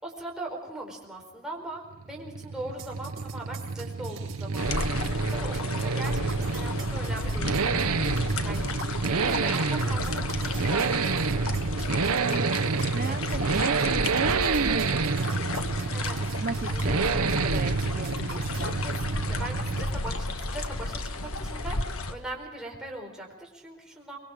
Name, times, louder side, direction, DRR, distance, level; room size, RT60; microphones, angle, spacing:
voice 1, 0.0-11.5 11.8-12.7 13.1-13.2 15.9-16.2 16.7-17.2 18.8-24.2, right 2 dB, 5° right, -2 dB, 4.5 m, -40 dB
Accelerating revving vroom, 1.9-20.1 20.4-20.5, right 4 dB, 85° right, 0.8 m, -28 dB
sound 1, 2.8-18.7, right 5 dB, 60° right, 4.6 m, -45 dB
sound 2, 4.6-22.1, left 2 dB, 75° left, 1.4 m, -33 dB
voice 2, 12.9-18.8, right 3 dB, 40° right, 7 dB, 0.7 m, -38 dB
25.0 x 22.0 x 5.0 m, 1.1 s
head